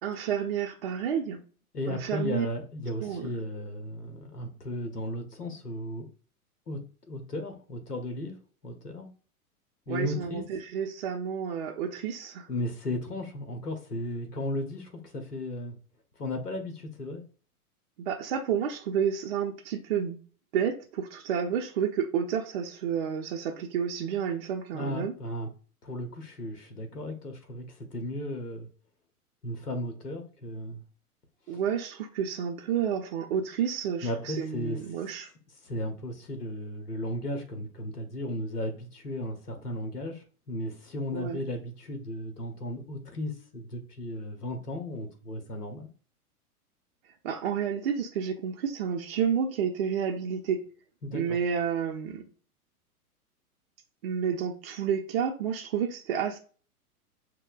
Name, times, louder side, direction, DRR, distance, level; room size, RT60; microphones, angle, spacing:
voice 1, 0.0-1.4 1.9-2.5 3.0-3.3 9.9-12.5 18.0-20.2 20.5-25.1 31.5-35.3 41.1-41.4 47.2-50.6 51.1-52.2 54.0-56.4, right 8 dB, 45° right, 0.5 m, -30 dB
voice 2, 1.7-6.1 6.7-6.8 7.1-9.1 9.9-10.4 12.5-15.8 16.2-17.2 24.7-25.5 25.8-28.7 29.4-30.8 31.5-31.6 34.0-34.8 35.6-45.9 51.0-51.4, left 1 dB, 90° left, 0.8 m, -35 dB
6.3 x 2.1 x 2.3 m
figure-of-eight pair, 105°, 45 cm